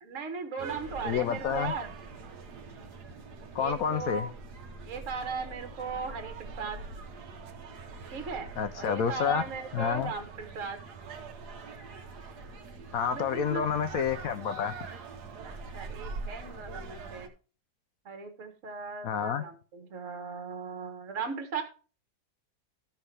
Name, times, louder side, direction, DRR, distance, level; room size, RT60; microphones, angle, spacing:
voice 1, 0.0-1.9 3.6-4.3 4.9-6.8 8.1-8.5 8.8-10.8 13.0-13.6 15.4-17.3 18.1-21.6, right 5 dB, 45° right, 1.7 m, -37 dB
sound 1, 0.6-17.3, right 4 dB, 65° right, 1.5 m, -43 dB
voice 2, 1.0-1.7 3.5-4.3 8.6-9.4 9.7-10.1 12.9-14.7 19.0-19.4, left 7 dB, 65° left, 0.9 m, -29 dB
13.5 x 5.7 x 3.3 m
omnidirectional pair, 1.9 m